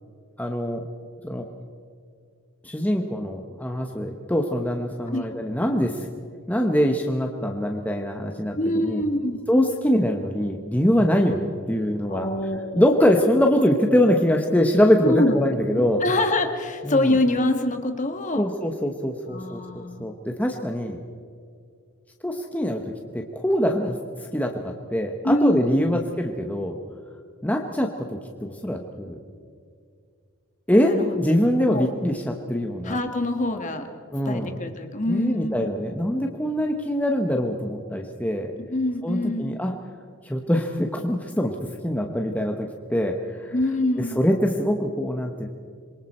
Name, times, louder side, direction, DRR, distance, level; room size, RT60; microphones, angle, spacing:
voice 1, 0.4-0.9 1.2-1.4 2.6-6.1 6.5-9.0 9.5-12.3 12.7-16.0 16.8-17.2 18.4-21.0 22.2-22.8 23.1-26.8 27.4-29.2 30.7-33.0 34.1-34.5 35.1-38.5 39.0-39.7 40.2-41.6 41.8-43.5 44.0-45.5, equal, 5° left, 3 dB, 1.0 m, -23 dB
voice 2, 8.6-9.4 12.1-13.0 15.0-15.4 15.7-18.5 19.3-20.1 25.2-26.0 30.8-31.1 31.7-31.9 32.8-33.9 34.2-35.7 38.6-39.6 43.5-44.2, left 1 dB, 35° left, 6 dB, 1.6 m, -25 dB
26.5 x 23.0 x 4.3 m, 2.3 s
head